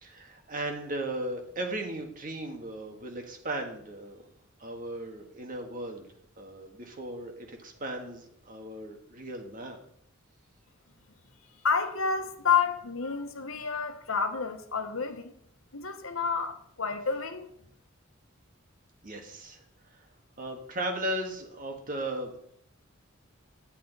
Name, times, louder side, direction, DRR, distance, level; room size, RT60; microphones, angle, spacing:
voice 1, 0.0-4.2 4.6-6.1 6.4-9.8 19.0-19.6 20.4-22.3, right 1 dB, 40° right, 1.7 m, -36 dB
voice 2, 11.6-15.3 15.7-17.5, left 5 dB, 80° left, 1.2 m, -29 dB
10.5 x 8.6 x 4.0 m
head